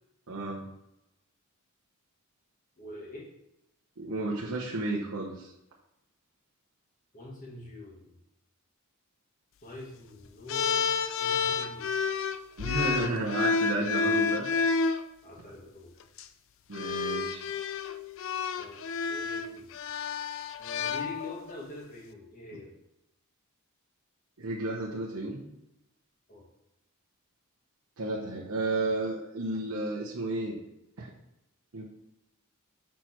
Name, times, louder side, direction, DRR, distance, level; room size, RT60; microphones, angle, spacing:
voice 1, 0.3-0.6 4.0-5.5 12.6-14.5 16.7-17.5 24.4-25.4 28.0-30.6 31.0-31.1 31.7-31.8, right 2 dB, 80° right, -4 dB, 1.0 m, -32 dB
voice 2, 2.8-3.3 7.1-8.1 9.6-10.9 11.2-11.9 15.2-15.9 18.6-19.7 20.6-22.7 26.3-26.5, left 2 dB, 40° left, -2 dB, 1.8 m, -44 dB
sound 1, 10.5-15.0 16.0-16.2 16.7-21.6, left 5 dB, 60° left, 0.4 m, -30 dB
5.8 x 4.6 x 4.5 m, 0.86 s
head